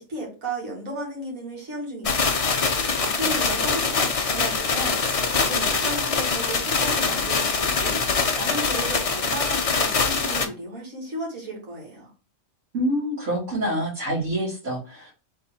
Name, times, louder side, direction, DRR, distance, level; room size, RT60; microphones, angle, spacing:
voice 1, 0.0-12.1, right 1 dB, 85° right, -2 dB, 2.2 m, -34 dB
sound 1, 2.0-10.5, left 4 dB, 45° left, 0.5 m, -23 dB
voice 2, 12.7-15.1, equal, 70° right, -7 dB, 2.2 m, -26 dB
3.6 x 3.2 x 4.3 m, 0.34 s
omnidirectional pair, 1.4 m